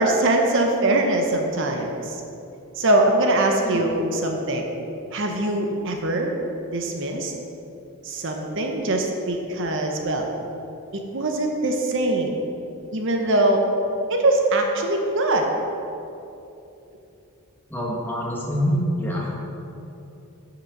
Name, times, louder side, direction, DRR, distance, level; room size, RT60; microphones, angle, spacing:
voice 1, 0.0-2.2 2.7-4.7 5.1-6.3 6.7-7.3 8.0-10.3 10.9-12.4 12.9-13.7 14.1-15.5, right 2 dB, 55° right, 2 dB, 0.8 m, -22 dB
voice 2, 17.7-19.3, equal, 10° left, -4 dB, 1.5 m, -25 dB
7.7 x 6.0 x 6.0 m, 2.9 s
head